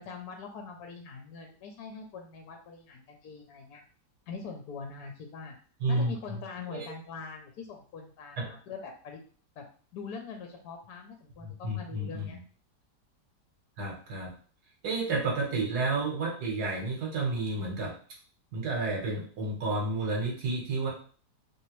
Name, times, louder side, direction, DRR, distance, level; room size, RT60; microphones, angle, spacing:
voice 1, 0.0-3.8 4.3-5.5 5.9-9.2 9.6-9.7 9.9-12.4, left 5 dB, 70° left, 3 dB, 1.1 m, -43 dB
voice 2, 5.8-6.1 6.7-6.9 8.4-8.5 11.4-12.4 13.8-14.3 14.8-18.0 18.5-20.9, right 2 dB, 65° right, -1 dB, 1.6 m, -31 dB
3.2 x 2.8 x 3.0 m, 0.42 s
omnidirectional pair, 1.8 m